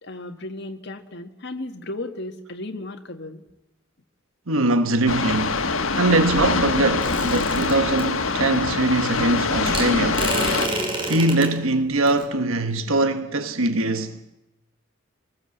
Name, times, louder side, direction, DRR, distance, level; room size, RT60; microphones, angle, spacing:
voice 1, 0.0-3.4, left 2 dB, 55° left, 1.7 m, -35 dB
voice 2, 4.5-5.7 6.0-10.3 11.0-14.2, right 2 dB, 80° right, 1.4 m, -22 dB
sound 1, 5.1-10.7, left 4 dB, 75° left, 1.6 m, -24 dB
sound 2, 7.0-8.0 9.7-11.5 12.1-12.2, right 1 dB, 25° right, 5.6 m, -28 dB
24.0 x 19.5 x 7.9 m
head